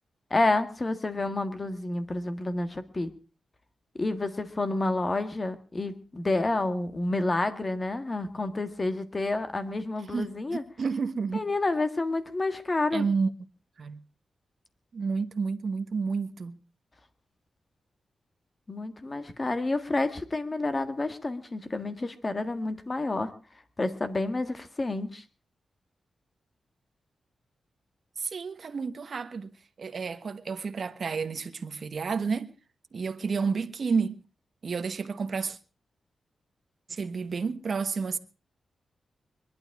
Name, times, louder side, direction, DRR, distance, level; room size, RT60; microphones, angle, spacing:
voice 1, 0.3-3.1 4.0-10.6 11.3-13.1 18.7-23.3 23.8-25.2, left 2 dB, 25° left, 1.7 m, -29 dB
voice 2, 10.8-11.4 12.9-13.3 13.8-14.0 14.9-16.6 28.2-29.5 29.8-32.5 32.9-34.2 34.6-35.6 36.9-38.2, right 5 dB, 50° right, 1.2 m, -30 dB
22.5 x 11.5 x 4.7 m
wide cardioid pair, 130°, 0 cm